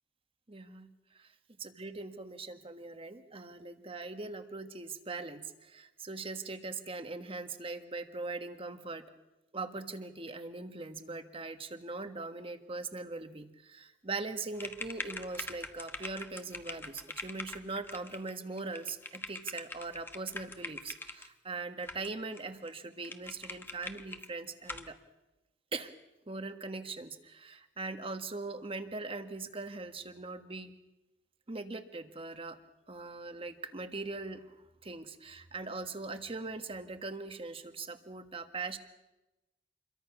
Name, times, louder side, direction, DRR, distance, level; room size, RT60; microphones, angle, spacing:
voice 1, 0.5-1.3 1.6-9.0 9.5-25.0 25.7-25.9 26.3-30.7 31.5-32.6 32.9-38.8, right 3 dB, 30° right, 8 dB, 1.5 m, -41 dB
sound 1, 14.5-21.3 21.8-22.4 22.7-22.8 23.0-24.3 24.6-24.9, left 2 dB, 10° left, 1.1 m, -43 dB
27.5 x 22.5 x 6.1 m, 1.0 s
head